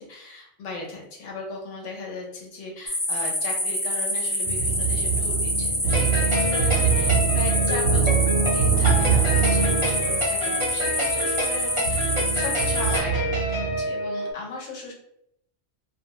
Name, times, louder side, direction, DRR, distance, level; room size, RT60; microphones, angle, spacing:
voice 1, 0.0-8.0 8.5-14.9, left 3 dB, 80° left, -1 dB, 1.1 m, -37 dB
sound 1, 2.9-13.0, left 1 dB, 40° left, 0.9 m, -27 dB
sound 2, 4.4-13.8, right 7 dB, 65° right, 0.7 m, -24 dB
sound 3, 5.9-14.3, left 1 dB, 30° right, 0.7 m, -28 dB
2.4 x 2.2 x 2.9 m, 0.75 s
omnidirectional pair, 1.2 m